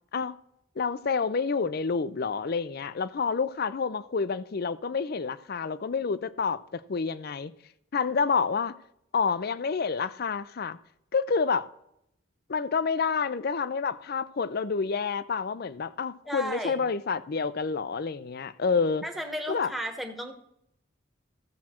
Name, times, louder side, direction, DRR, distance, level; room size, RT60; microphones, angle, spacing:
voice 1, 0.8-7.5 7.9-8.7 9.1-10.8 11.1-11.7 12.5-19.0 19.5-19.7, left 5 dB, 50° left, 0.5 m, -28 dB
voice 2, 16.3-16.8 19.0-20.3, equal, ahead, 1.1 m, -34 dB
14.0 x 7.4 x 4.3 m
head